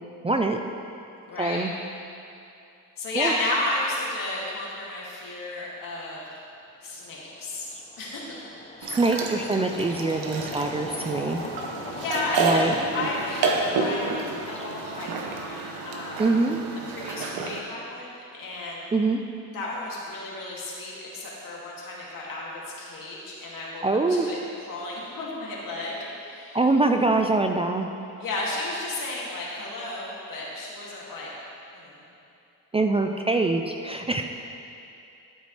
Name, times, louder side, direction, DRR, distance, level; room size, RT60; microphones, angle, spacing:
voice 1, 0.2-0.6 1.4-1.7 3.2-3.3 8.8-11.4 12.4-12.8 16.2-16.6 18.9-19.2 23.8-24.3 26.5-27.9 32.7-34.2, right 3 dB, 15° right, 4 dB, 0.4 m, -24 dB
voice 2, 1.3-1.6 3.0-6.2 6.8-7.6 8.0-8.4 11.9-14.1 14.5-16.2 16.9-18.8 19.5-24.4 24.7-26.6 28.2-31.3 31.7-32.0, left 2 dB, 70° left, -5 dB, 2.5 m, -33 dB
sound 1, 6.3-6.4 6.9-15.4, left 2 dB, 20° left, 0.7 m, -41 dB
sound 2, 8.8-17.6, right 3 dB, 90° right, 1.0 m, -30 dB
13.5 x 8.2 x 3.3 m, 2.6 s
cardioid pair, 115°, 34 cm